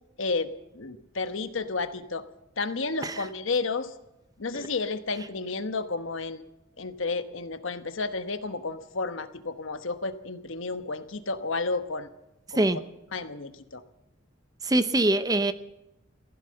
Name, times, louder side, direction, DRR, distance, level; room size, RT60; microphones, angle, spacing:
voice 1, 0.2-2.2 2.6-3.9 4.4-6.4 6.8-12.1 12.5-12.7 13.1-13.8, left 3 dB, 75° left, 10 dB, 1.1 m, -31 dB
voice 2, 14.6-15.5, right 2 dB, 20° right, 12 dB, 0.7 m, -23 dB
15.5 x 11.5 x 7.7 m, 0.91 s
head